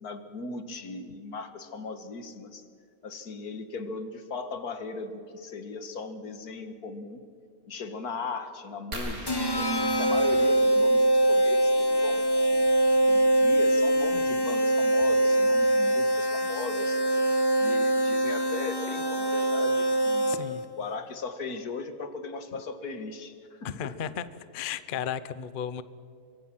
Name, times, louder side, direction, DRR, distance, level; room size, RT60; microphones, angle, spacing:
voice 1, 0.0-2.6 3.0-7.2 7.7-12.7 13.1-17.0 17.6-20.4 20.8-24.2, left 4 dB, 85° left, 10 dB, 2.0 m, -38 dB
sound 1, 8.9-11.3 12.9-13.1 13.7-13.8 14.0-14.3, right 1 dB, 70° right, 3.8 m, -41 dB
sound 2, 9.3-20.7, right 1 dB, 15° left, 1.1 m, -23 dB
voice 2, 20.3-20.6 23.6-24.3 24.5-25.8, left 8 dB, 45° left, 14 dB, 0.8 m, -34 dB
24.5 x 23.0 x 6.1 m, 2.4 s
omnidirectional pair, 1.6 m